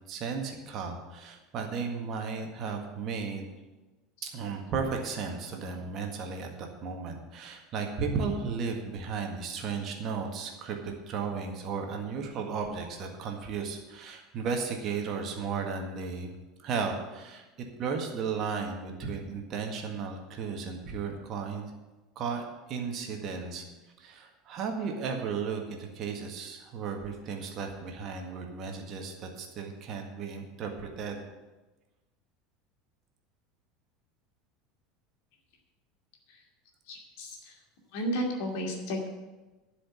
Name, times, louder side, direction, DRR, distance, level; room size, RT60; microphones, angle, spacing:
voice 1, 0.1-3.5 4.2-16.3 16.6-21.7 22.2-23.6 24.0-31.2, right 5 dB, 40° right, 3 dB, 1.8 m, -35 dB
voice 2, 36.9-37.6 37.9-39.1, equal, 55° left, 1 dB, 2.4 m, -33 dB
12.0 x 5.1 x 8.7 m, 1.2 s
figure-of-eight pair, 75°, 0 cm